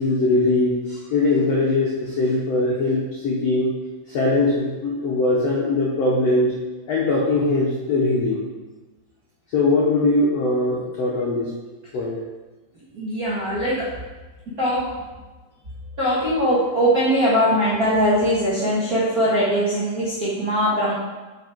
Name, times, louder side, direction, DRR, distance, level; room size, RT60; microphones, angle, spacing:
voice 1, 0.0-3.7 4.1-6.5 6.9-8.4 9.5-11.5 11.9-12.1, left 2 dB, 80° left, -4 dB, 1.4 m, -21 dB
voice 2, 12.9-13.9 14.6-14.9 16.0-20.9, equal, 75° right, -8 dB, 0.8 m, -21 dB
8.0 x 5.2 x 4.6 m, 1.2 s
omnidirectional pair, 4.4 m